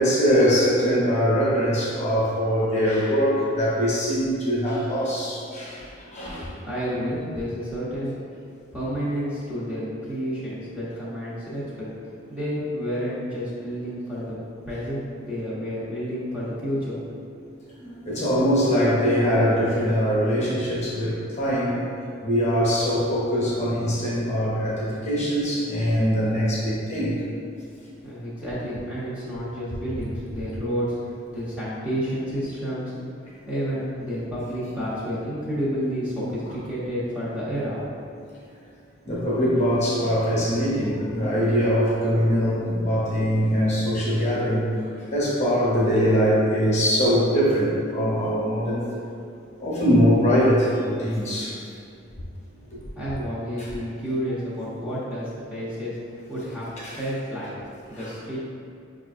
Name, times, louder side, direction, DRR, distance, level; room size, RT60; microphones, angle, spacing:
voice 1, 0.0-6.5 17.8-21.8 22.2-27.2 39.0-44.7 45.1-48.9 49.6-51.6 53.6-53.7 56.8-57.0 58.0-58.1, equal, 35° left, -7 dB, 0.8 m, -22 dB
voice 2, 6.6-8.2 8.7-11.9 12.3-14.4 14.7-17.0 17.3-17.4 28.0-33.1 33.5-37.8 52.9-56.0 56.3-56.7 57.0-57.5 57.9-58.4, equal, 5° right, -10 dB, 0.6 m, -30 dB
5.4 x 2.4 x 2.4 m, 2.4 s
head